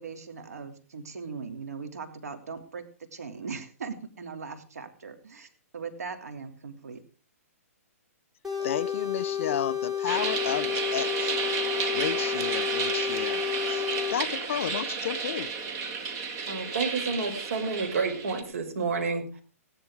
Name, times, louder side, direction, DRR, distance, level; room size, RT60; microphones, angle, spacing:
voice 1, 0.0-7.0, right 5 dB, 85° right, 3.1 m, -39 dB
sound 1, 8.4-14.2, left 9 dB, 5° right, 5.2 m, -31 dB
voice 2, 8.6-11.3 11.9-15.5, left 9 dB, 55° left, 1.0 m, -32 dB
sound 2, 10.1-18.4, right 5 dB, 35° right, 2.2 m, -32 dB
voice 3, 16.5-19.4, right 4 dB, 65° right, 5.1 m, -30 dB
16.5 x 11.0 x 5.0 m
hypercardioid pair, 145°, 8 cm